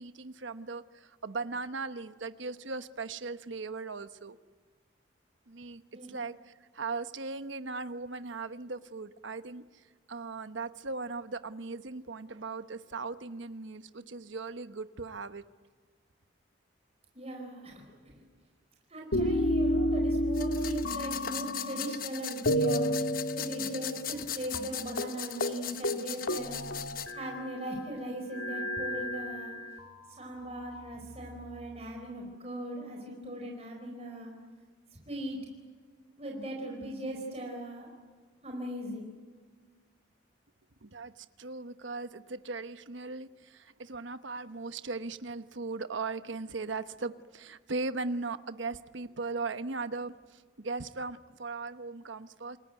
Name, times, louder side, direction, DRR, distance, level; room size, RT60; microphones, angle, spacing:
voice 1, 0.0-4.4 5.5-5.8 6.1-15.4 40.8-52.6, right 3 dB, 75° right, 11 dB, 1.0 m, -38 dB
voice 2, 17.1-18.2 18.9-26.8 27.1-29.5 30.1-34.3 34.9-35.4 36.2-37.9 38.4-39.1, right 1 dB, 30° right, 0 dB, 4.6 m, -39 dB
sound 1, 19.1-22.1 22.5-24.3 24.5-24.7 25.0-25.1 25.4-25.6 25.8-27.6 28.3-29.9 30.6-31.5, equal, 85° left, 2.0 m, -31 dB
sound 2, 20.3-27.1, left 11 dB, 45° left, 1.1 m, -39 dB
28.5 x 21.0 x 9.2 m, 1.6 s
head